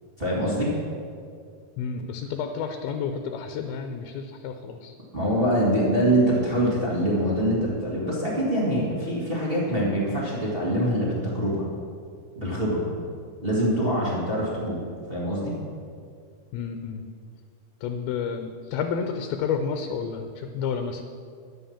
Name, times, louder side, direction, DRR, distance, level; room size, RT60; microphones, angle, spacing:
voice 1, 0.2-0.7 5.1-11.6 12.3-13.0 13.4-14.8 15.1-15.5, right 1 dB, 40° right, -6 dB, 0.8 m, -24 dB
voice 2, 1.8-4.9 16.5-17.0 17.8-21.0, left 6 dB, 80° left, 6 dB, 2.5 m, -30 dB
11.0 x 7.5 x 7.1 m, 2.2 s
omnidirectional pair, 4.6 m